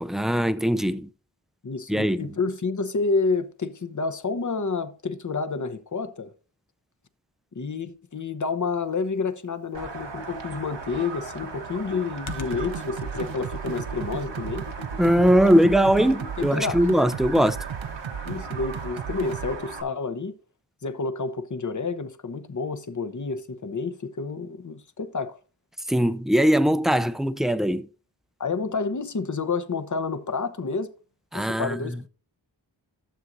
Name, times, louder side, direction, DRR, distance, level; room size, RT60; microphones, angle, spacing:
voice 1, 0.0-1.1 1.9-2.3 15.0-17.6 25.9-27.9 31.3-32.0, equal, ahead, 0.5 m, -21 dB
voice 2, 1.6-6.3 7.5-14.7 16.4-16.8 18.2-20.3 20.8-25.4 28.4-30.9 31.3-32.1, left 4 dB, 40° left, 0.8 m, -29 dB
sound 1, 9.7-19.8, right 4 dB, 65° right, 1.2 m, -38 dB
Computer keyboard, 10.0-16.9, left 5 dB, 80° left, 0.9 m, -42 dB
sound 2, 12.3-19.5, right 8 dB, 80° right, 0.6 m, -35 dB
12.5 x 7.1 x 2.6 m
wide cardioid pair, 45°, 46 cm